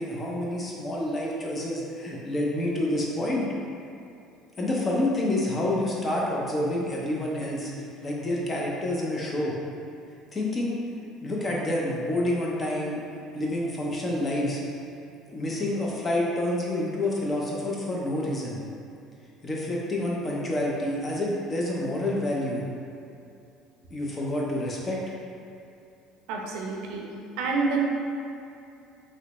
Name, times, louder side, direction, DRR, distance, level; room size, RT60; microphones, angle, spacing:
voice 1, 0.0-3.5 4.6-9.5 10.3-10.8 11.2-13.0 13.3-14.6 15.3-18.6 19.4-22.6 23.9-25.0, left 1 dB, 20° left, -3 dB, 0.5 m, -28 dB
voice 2, 26.3-27.9, right 4 dB, 80° right, 0 dB, 0.5 m, -28 dB
3.1 x 3.0 x 2.9 m, 2.6 s
cardioid pair, 150°, 0 cm